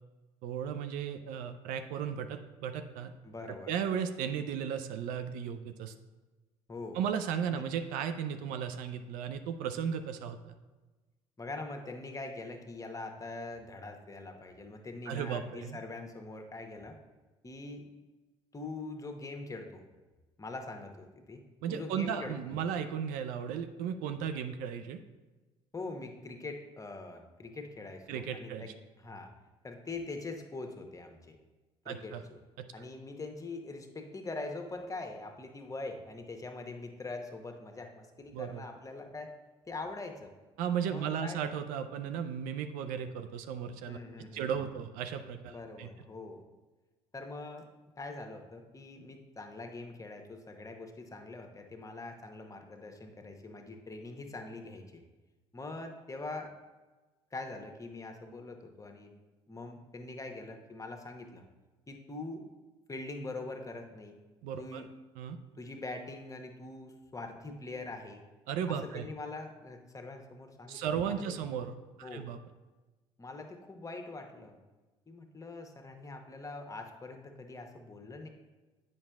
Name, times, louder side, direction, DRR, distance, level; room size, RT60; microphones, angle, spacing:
voice 1, 0.4-3.1 3.7-5.9 6.9-10.6 15.1-15.8 21.6-25.0 28.1-28.7 31.9-32.2 38.3-38.6 40.6-44.0 44.3-45.9 64.4-64.8 65.2-65.4 68.5-69.1 70.7-71.7 72.0-72.4, right 8 dB, 70° right, 8 dB, 0.4 m, -35 dB
voice 2, 3.2-3.7 6.7-7.0 7.5-7.7 11.4-17.0 17.4-17.8 18.5-19.8 20.4-21.4 21.7-22.7 25.7-29.3 29.6-31.4 31.8-32.4 32.7-39.3 39.7-40.3 40.9-41.4 43.8-44.5 45.5-46.4 47.1-47.7 48.0-55.0 55.5-56.5 57.3-59.1 59.5-61.4 61.9-62.5 62.9-64.2 64.6-64.9 65.6-68.2 68.7-71.3 72.0-72.3 73.2-74.6 75.1-78.3, left 3 dB, 20° left, 4 dB, 1.0 m, -43 dB
8.5 x 5.3 x 2.3 m, 1.2 s
hypercardioid pair, 55°, 15 cm